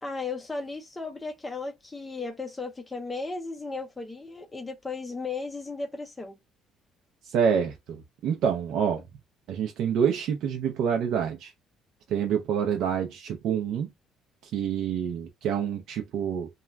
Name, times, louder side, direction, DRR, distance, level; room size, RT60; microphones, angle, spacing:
voice 1, 0.0-6.4, left 3 dB, 10° left, 0.4 m, -35 dB
voice 2, 7.2-9.0 9.5-11.5 12.1-13.9 14.4-16.5, right 7 dB, 65° right, 0.5 m, -27 dB
2.4 x 2.2 x 3.2 m
cardioid pair, 135°, 0 cm